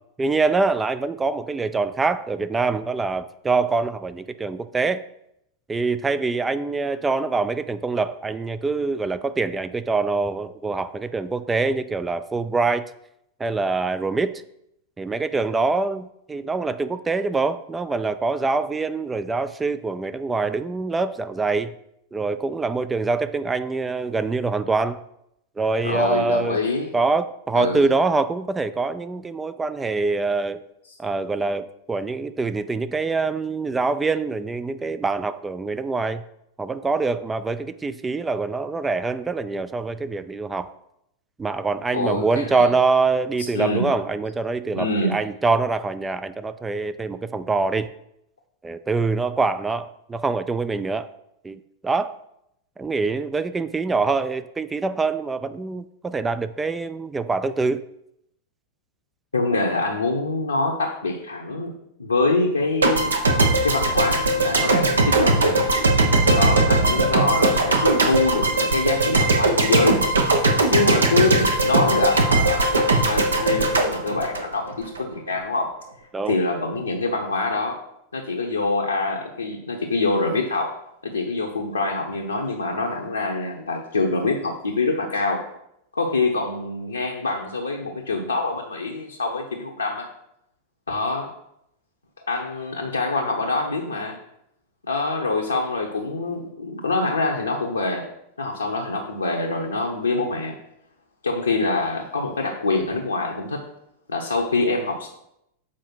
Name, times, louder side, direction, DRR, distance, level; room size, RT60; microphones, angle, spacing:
voice 1, 0.2-5.0 5.7-12.9 13.4-14.3 15.0-21.7 22.1-25.0 25.6-26.6 26.9-30.6 31.0-36.2 36.6-40.7 41.4-47.9 48.6-51.1 51.4-52.1 52.8-57.8 66.8-67.3 76.1-76.4, right 3 dB, 15° right, 12 dB, 0.4 m, -24 dB
voice 2, 25.8-26.9 27.5-27.9 41.9-42.7 43.4-43.9 44.7-45.2 59.3-63.2 63.6-65.6 66.3-70.1 70.7-75.7 76.2-77.8 78.1-80.7 81.0-85.4 85.9-90.1 90.9-91.3 92.3-94.2 94.9-98.1 98.4-100.6 101.2-103.7 104.1-105.1, left 3 dB, 75° left, -1 dB, 0.9 m, -25 dB
sound 1, 62.8-75.0, right 2 dB, 75° right, 1.0 m, -19 dB
7.4 x 4.8 x 4.5 m, 0.78 s
figure-of-eight pair, 90°, 0 cm